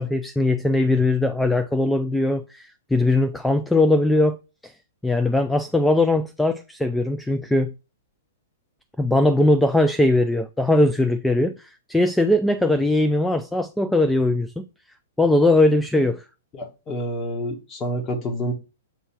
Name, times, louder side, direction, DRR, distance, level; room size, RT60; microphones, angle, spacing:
voice 1, 0.0-4.4 4.6-4.7 5.0-7.7 9.0-14.6 15.2-16.2, left 2 dB, 5° left, 0.4 m, -20 dB
voice 2, 16.5-18.5, equal, 20° left, 1.4 m, -28 dB
7.8 x 3.3 x 4.6 m
figure-of-eight pair, 110°, 0 cm